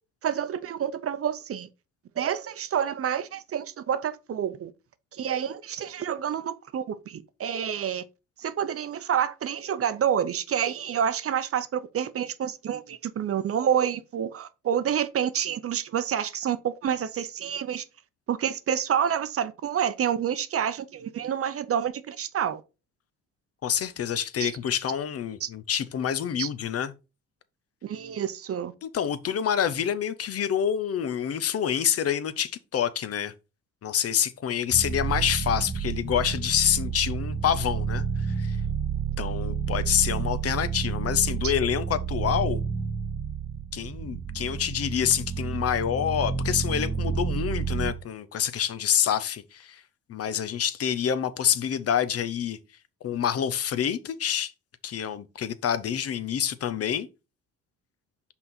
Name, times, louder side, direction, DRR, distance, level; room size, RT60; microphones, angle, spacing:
voice 1, 0.2-1.7 2.2-4.7 5.1-8.0 8.4-17.8 18.3-22.6 24.4-24.5 25.4-25.5 26.4-26.5 27.8-28.7 41.4-41.5, right 9 dB, 50° right, 0.7 m, -28 dB
voice 2, 23.6-26.9 28.8-33.3 33.8-38.6 39.2-42.6 43.7-49.8 50.1-52.6 53.0-54.5 54.8-57.1, left 9 dB, 50° left, 0.7 m, -27 dB
sound 1, 34.7-47.9, right 6 dB, 10° right, 1.4 m, -30 dB
5.7 x 4.0 x 4.1 m
cardioid pair, 90°, 30 cm